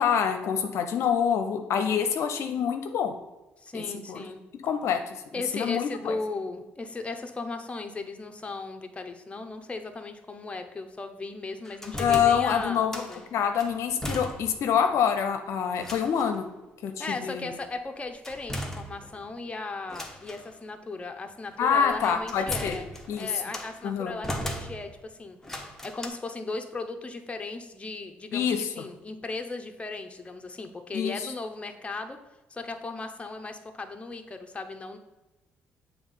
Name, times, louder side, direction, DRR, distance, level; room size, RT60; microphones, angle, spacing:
voice 1, 0.0-3.2 3.7-3.8 4.1-4.2 4.6-5.2 5.5-6.2 12.0-13.0 13.3-16.5 16.8-17.5 21.6-22.8 23.1-23.3 23.8-24.1 28.3-28.7 30.9-31.3, left 7 dB, 70° left, 6 dB, 0.6 m, -26 dB
voice 2, 3.6-4.4 5.3-13.3 17.0-22.9 23.2-25.4 25.8-32.2 32.5-35.0, left 3 dB, 25° left, 6 dB, 0.9 m, -37 dB
sound 1, 11.7-13.2 13.6-14.7 15.0-15.1 15.8-16.4 18.2-19.4 19.9-20.5 21.6-23.8 24.2-25.1 25.4-26.1, equal, 10° left, 1.2 m, -37 dB
7.1 x 3.5 x 5.6 m, 1.0 s
supercardioid pair, 65°, 5 cm